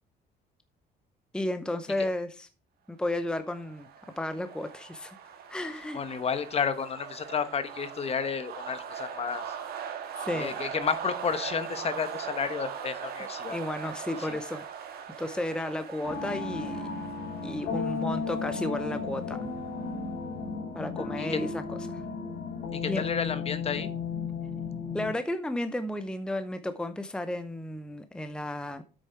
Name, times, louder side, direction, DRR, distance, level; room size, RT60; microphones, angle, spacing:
voice 1, 1.3-2.5 2.9-3.9 4.2-5.2 5.5-6.2 10.2-10.6 13.5-14.6 15.2-16.9 17.4-19.4 20.7-22.0 22.8-23.0 24.9-28.8, left 1 dB, 5° left, 0.7 m, -33 dB
sound 1, 3.3-19.9, right 8 dB, 65° right, 1.7 m, -41 dB
voice 2, 5.9-9.5 10.3-13.6 14.2-14.4 21.2-21.4 22.7-23.9, left 6 dB, 35° left, 1.1 m, -31 dB
sound 2, 16.0-25.1, left 4 dB, 80° left, 3.4 m, -34 dB
8.2 x 6.7 x 4.6 m
cardioid pair, 110°, 17 cm